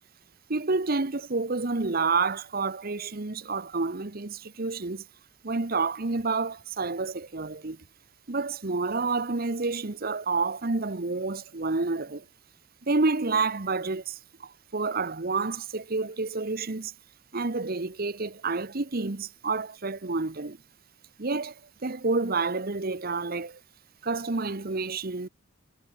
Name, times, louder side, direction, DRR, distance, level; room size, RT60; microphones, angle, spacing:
voice 1, 0.5-5.0 5.4-7.8 8.3-12.2 12.9-14.2 14.7-16.9 17.3-20.6 21.2-21.5 21.8-23.6 24.0-25.3, right 3 dB, 45° right, 1.1 m, -29 dB
head